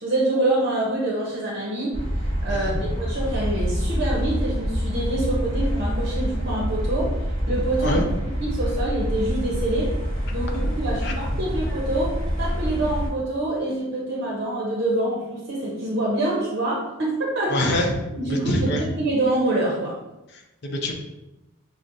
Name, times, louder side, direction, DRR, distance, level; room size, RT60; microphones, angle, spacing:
voice 1, 0.0-2.0 2.4-7.2 7.5-8.0 8.4-10.0 10.3-17.7 18.1-19.9, right 2 dB, 55° right, -4 dB, 0.7 m, -26 dB
sound 1, 1.9-13.1, equal, 25° left, 1.0 m, -26 dB
voice 2, 2.5-2.9 7.8-8.0 10.6-10.7 11.0-11.1 17.5-18.0 18.2-18.9 20.6-20.9, left 1 dB, 55° left, 1 dB, 0.6 m, -25 dB
5.9 x 2.1 x 2.6 m, 0.98 s
head